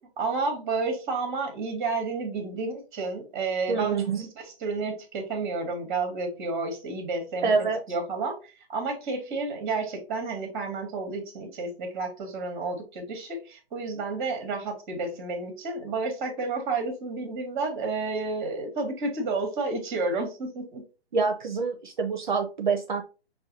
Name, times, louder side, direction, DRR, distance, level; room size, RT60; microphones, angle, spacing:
voice 1, 0.2-20.8, right 3 dB, 15° right, 0.8 m, -31 dB
voice 2, 3.7-4.2 7.4-7.8 21.1-23.0, right 5 dB, 50° right, 0.5 m, -26 dB
5.6 x 2.2 x 2.7 m
figure-of-eight pair, 130°, 32 cm